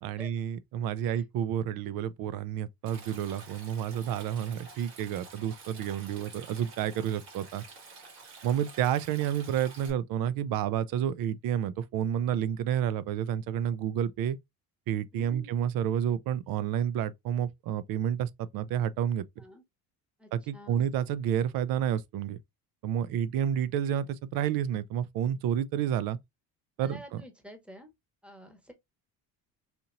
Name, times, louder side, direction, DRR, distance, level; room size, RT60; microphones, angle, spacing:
voice 1, 0.0-7.6 8.4-14.4 14.9-19.2 20.3-22.4 22.8-26.2 26.8-27.2, right 9 dB, 60° right, 0.5 m, -30 dB
Stream, 2.9-9.9, right 4 dB, 85° right, 1.6 m, -49 dB
voice 2, 15.1-15.5 19.4-19.6 20.2-20.9 26.8-27.9 28.2-28.7, equal, 5° right, 0.9 m, -49 dB
4.3 x 2.8 x 2.5 m
cardioid pair, 105°, 39 cm